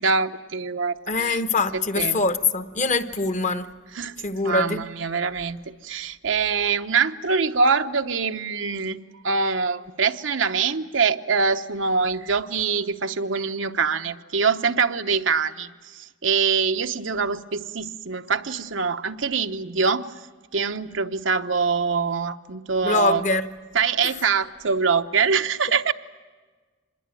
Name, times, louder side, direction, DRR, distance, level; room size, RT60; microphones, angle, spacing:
voice 1, 0.0-1.4 2.0-2.2 4.0-5.6 5.8-9.0 9.2-20.1 20.5-23.2 23.7-25.9, right 5 dB, 80° right, 1.0 m, -24 dB
voice 2, 1.1-3.7 4.2-4.9 22.8-23.4 24.0-24.1, left 3 dB, 40° left, 1.1 m, -23 dB
26.0 x 21.0 x 9.2 m
head